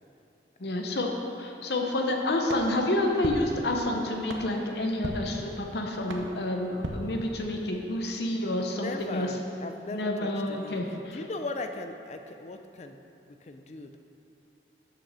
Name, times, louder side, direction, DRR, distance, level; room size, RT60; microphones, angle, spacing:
voice 1, 0.6-1.1 1.4-9.3 9.9-11.2, left 1 dB, 70° left, 2 dB, 0.8 m, -29 dB
sound 1, 2.5-7.8, right 1 dB, 90° right, 0.8 m, -40 dB
voice 2, 8.8-13.0 13.3-14.0, left 2 dB, 40° left, 7 dB, 0.4 m, -38 dB
6.8 x 6.2 x 6.1 m, 2.8 s
head